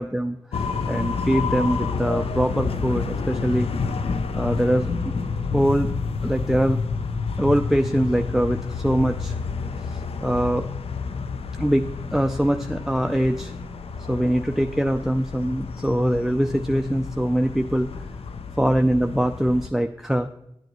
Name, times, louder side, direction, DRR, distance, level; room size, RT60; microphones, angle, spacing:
voice 1, 0.0-3.7 4.3-5.1 5.5-5.9 6.2-6.8 7.4-9.3 9.8-10.6 11.6-13.5 14.1-17.9 18.6-20.3, equal, 5° right, 8 dB, 0.4 m, -23 dB
sound 1, 0.5-19.7, left 4 dB, 90° left, 0.5 m, -29 dB
sound 2, 1.7-6.2, equal, 60° left, 3.5 m, -48 dB
10.0 x 9.5 x 3.0 m, 0.84 s
wide cardioid pair, 60°, 10 cm